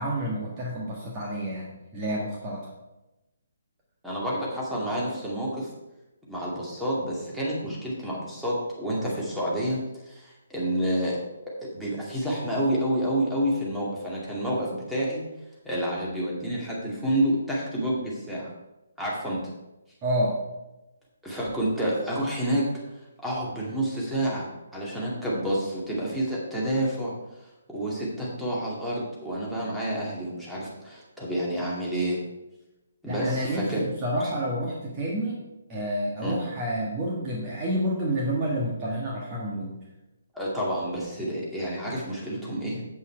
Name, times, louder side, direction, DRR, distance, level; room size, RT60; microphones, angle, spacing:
voice 1, 0.0-2.7 20.0-20.4 33.0-35.4 35.7-39.7, equal, 20° right, -4 dB, 1.7 m, -29 dB
voice 2, 4.0-5.7 6.3-9.8 10.0-11.2 11.6-15.2 15.6-18.5 19.0-19.4 21.2-22.6 23.2-32.2 33.0-33.9 36.2-36.4 40.3-42.9, right 1 dB, ahead, -7 dB, 2.3 m, -29 dB
8.5 x 8.0 x 4.6 m, 0.99 s
figure-of-eight pair, 135°, 0 cm